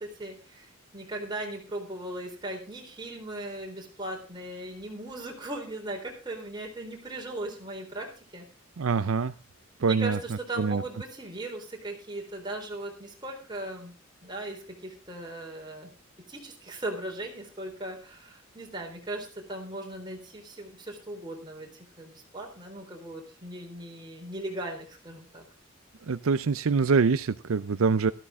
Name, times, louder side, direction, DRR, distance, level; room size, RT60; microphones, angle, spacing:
voice 1, 0.0-8.5 9.8-13.9 14.2-15.9 16.3-25.5, right 1 dB, 20° right, 1 dB, 3.9 m, -38 dB
voice 2, 8.8-9.3 9.8-10.2 10.6-10.8 26.1-28.1, right 5 dB, 80° right, 14 dB, 0.5 m, -24 dB
13.5 x 12.5 x 3.6 m, 0.34 s
head